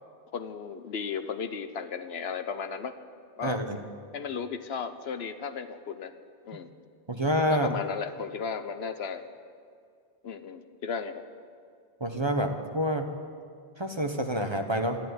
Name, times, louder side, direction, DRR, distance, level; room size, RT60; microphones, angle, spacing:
voice 1, 0.3-3.0 3.4-3.6 4.1-6.1 6.5-6.7 7.5-9.2 10.2-11.2, left 6 dB, 70° left, 10 dB, 1.0 m, -35 dB
voice 2, 3.4-3.8 7.1-7.7 12.0-13.1 13.8-15.0, equal, 25° right, 5 dB, 0.9 m, -27 dB
13.0 x 10.5 x 9.4 m, 2.2 s
omnidirectional pair, 1.1 m